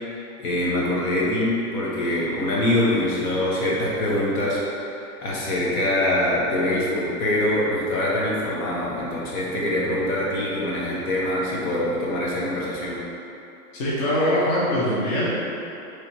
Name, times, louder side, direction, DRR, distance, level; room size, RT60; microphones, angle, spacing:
voice 1, 0.4-13.0, left 1 dB, 70° left, -5 dB, 1.2 m, -24 dB
voice 2, 13.7-15.3, equal, 40° left, -8 dB, 0.6 m, -22 dB
3.3 x 2.8 x 4.4 m, 2.8 s
supercardioid pair, 175°, 45 cm